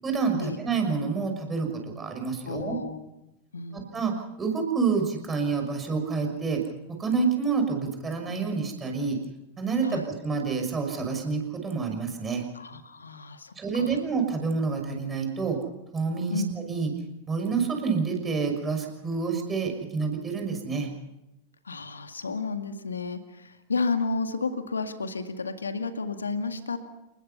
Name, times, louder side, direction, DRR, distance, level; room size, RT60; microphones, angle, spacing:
voice 1, 0.0-2.8 3.7-4.1 4.4-6.6 7.0-9.2 9.6-12.4 13.6-15.6 15.9-16.9 17.3-20.9, right 5 dB, 20° right, 3 dB, 6.1 m, -28 dB
voice 2, 2.5-3.1 3.5-3.9 9.8-10.1 12.5-14.0 16.3-16.5 21.7-26.8, left 4 dB, 75° left, 8 dB, 2.0 m, -32 dB
30.0 x 20.5 x 5.7 m, 0.92 s
figure-of-eight pair, 90°, 0 cm